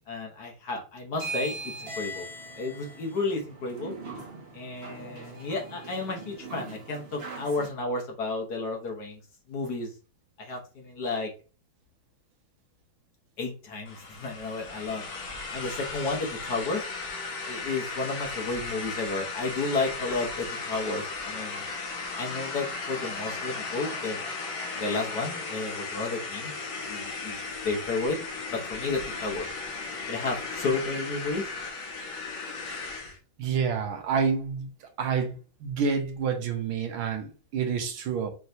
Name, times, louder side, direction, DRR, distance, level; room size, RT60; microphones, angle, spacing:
voice 1, 0.1-1.5 2.0-2.3 2.6-3.9 4.5-9.2 9.5-9.9 10.4-11.3 13.4-15.0 15.5-16.8 17.5-21.7 22.2-24.2 24.8-26.5 26.8-27.4 27.6-28.2 28.5-29.5 30.1-31.5, left 3 dB, 55° left, 1.5 m, -32 dB
sound 1, 1.1-7.7, right 2 dB, 40° right, 0.9 m, -40 dB
sound 2, 13.9-33.2, left 4 dB, 75° left, 1.9 m, -36 dB
voice 2, 33.4-34.7 35.0-35.3 35.6-38.3, right 6 dB, 80° right, 1.7 m, -28 dB
5.6 x 3.1 x 2.7 m
omnidirectional pair, 2.2 m